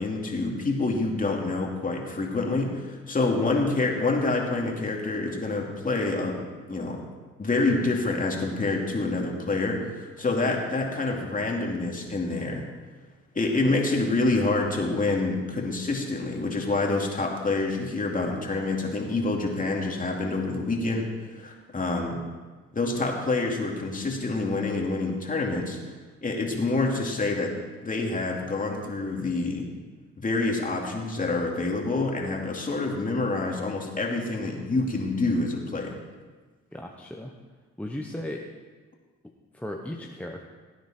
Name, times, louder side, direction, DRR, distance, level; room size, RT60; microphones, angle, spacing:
voice 1, 0.0-6.4 6.7-7.0 7.4-12.6 13.3-22.2 22.7-25.8 26.2-27.5 27.8-29.6 30.2-35.9, left 3 dB, 25° left, 0 dB, 2.6 m, -27 dB
voice 2, 36.7-37.3 37.8-38.4 39.5-40.4, left 1 dB, 5° left, 0 dB, 1.0 m, -36 dB
18.0 x 9.3 x 4.4 m, 1.4 s
cardioid pair, 90°, 30 cm